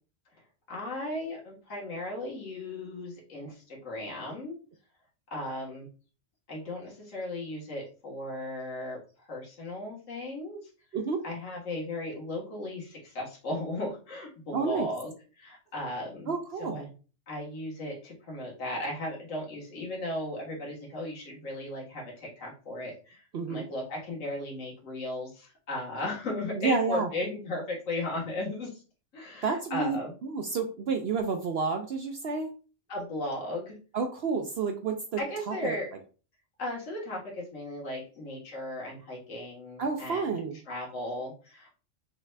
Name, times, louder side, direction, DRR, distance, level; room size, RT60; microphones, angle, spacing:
voice 1, 0.7-4.6 5.3-5.9 6.5-9.0 9.3-10.6 11.2-16.3 16.6-16.9 17.3-28.8 29.1-30.1 32.9-33.8 35.2-35.9 36.6-40.3 40.7-41.7, left 1 dB, 70° left, -4 dB, 1.9 m, -36 dB
voice 2, 10.9-11.2 14.5-14.9 16.3-16.8 23.3-23.6 26.6-27.1 29.4-32.5 33.9-35.2 35.5-35.8 39.8-40.6, right 4 dB, 60° right, 4 dB, 0.7 m, -30 dB
5.8 x 2.4 x 3.2 m, 0.36 s
omnidirectional pair, 1.3 m